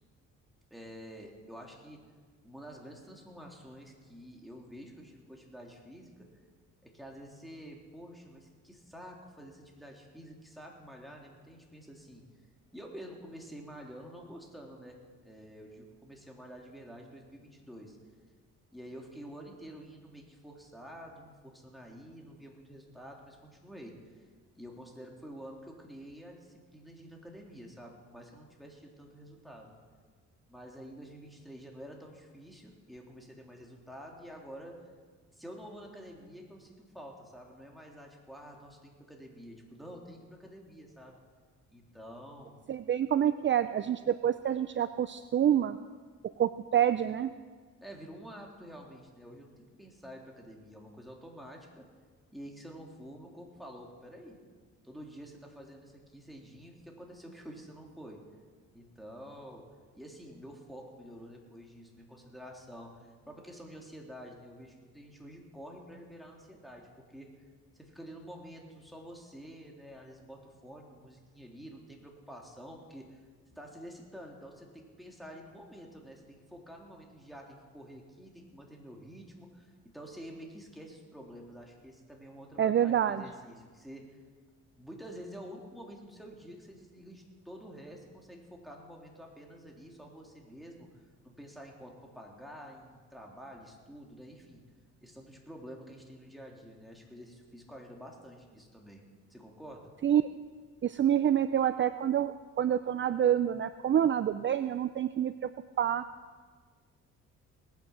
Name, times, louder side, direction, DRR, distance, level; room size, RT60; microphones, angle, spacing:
voice 1, 0.7-2.0 2.4-6.3 6.8-12.2 12.7-18.0 18.7-24.0 24.6-29.7 30.5-34.8 35.3-41.2 41.7-42.5 47.8-51.9 52.3-54.4 54.8-58.2 58.7-59.6 59.9-67.3 67.7-73.2 73.5-84.2 84.8-94.6 95.0-99.0 99.3-99.9, equal, ahead, -1 dB, 3.5 m, -49 dB
voice 2, 42.7-45.8 46.4-47.3 82.6-83.2 100.0-100.3 100.8-105.3 105.8-106.0, right 10 dB, 40° right, 12 dB, 0.5 m, -27 dB
19.0 x 9.4 x 7.5 m, 1.5 s
cardioid pair, 90°, 30 cm